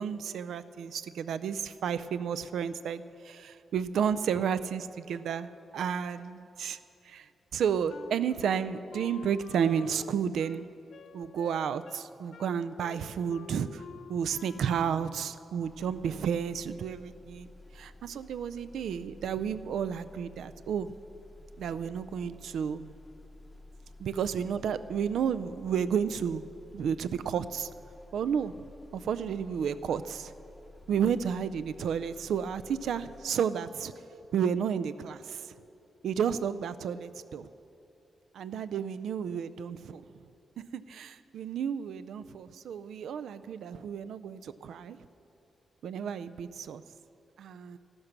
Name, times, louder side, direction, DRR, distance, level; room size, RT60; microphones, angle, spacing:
voice 1, 0.0-6.8 7.0-10.6 11.1-13.8 14.1-17.5 17.7-20.9 21.6-22.9 24.0-26.4 26.7-27.7 28.1-28.5 28.9-30.3 30.9-33.9 34.3-35.5 36.0-37.5 38.3-40.2 40.7-45.0 45.8-46.8 47.4-47.8, right 7 dB, 85° right, 13 dB, 0.4 m, -32 dB
Wind instrument woodwind instrument, 7.9-15.3, left 7 dB, 60° left, 0.4 m, -49 dB
sound 1, 15.6-33.3, left 2 dB, 10° left, 0.7 m, -53 dB
13.5 x 11.5 x 5.9 m, 2.8 s
wide cardioid pair, 140°, 0 cm